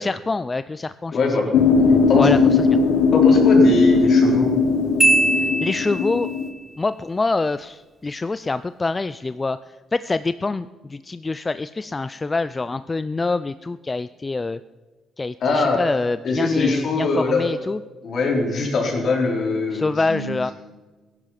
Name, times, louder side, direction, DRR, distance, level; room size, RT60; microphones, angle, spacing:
voice 1, 0.0-1.4 2.2-2.8 5.6-6.3 6.8-9.6 9.9-14.6 15.2-17.8 19.7-20.5, left 3 dB, 25° left, 13 dB, 0.4 m, -25 dB
voice 2, 1.1-1.5 2.1-2.3 3.1-4.5 15.4-15.8 16.2-17.5 18.0-20.4, left 3 dB, 60° left, 0 dB, 4.2 m, -22 dB
sound 1, 1.5-6.5, left 4 dB, 85° left, 1.2 m, -17 dB
Marimba xylophone, 5.0-6.4, right 2 dB, 20° right, 1.2 m, -20 dB
16.5 x 11.0 x 5.8 m, 1.3 s
cardioid pair, 90°, 0 cm